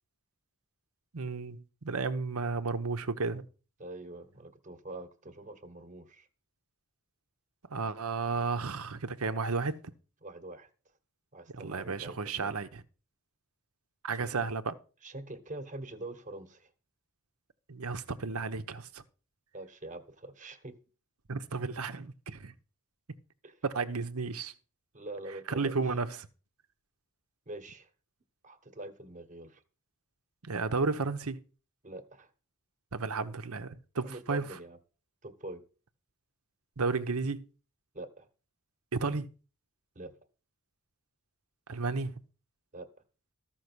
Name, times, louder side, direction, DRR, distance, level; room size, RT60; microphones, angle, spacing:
voice 1, 1.1-3.5 7.7-9.8 11.5-12.8 14.0-14.7 17.7-19.0 21.3-22.5 23.6-24.5 25.5-26.3 30.4-31.4 32.9-34.5 36.8-37.5 38.9-39.3 41.7-42.1, right 4 dB, 70° right, 1.0 m, -33 dB
voice 2, 3.8-6.3 10.2-10.7 11.3-12.5 14.1-14.4 15.0-16.7 19.5-20.8 23.4-23.6 24.9-25.7 27.5-27.9 28.4-29.6 31.8-32.3 34.0-34.8 35.2-35.6 37.9-38.3 39.9-40.1 42.7-42.9, right 2 dB, 35° right, 1.3 m, -44 dB
13.5 x 6.2 x 6.2 m
head